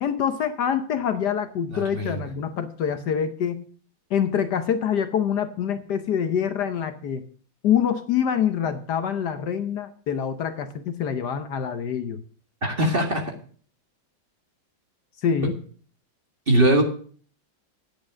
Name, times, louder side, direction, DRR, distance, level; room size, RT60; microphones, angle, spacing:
voice 1, 0.0-3.6 4.1-7.2 7.6-12.2 15.2-15.6, left 8 dB, 65° left, 10 dB, 1.4 m, -25 dB
voice 2, 1.7-2.2 12.6-13.3 16.5-16.8, right 1 dB, 30° right, 2 dB, 2.1 m, -21 dB
10.0 x 8.6 x 6.2 m, 0.43 s
omnidirectional pair, 2.0 m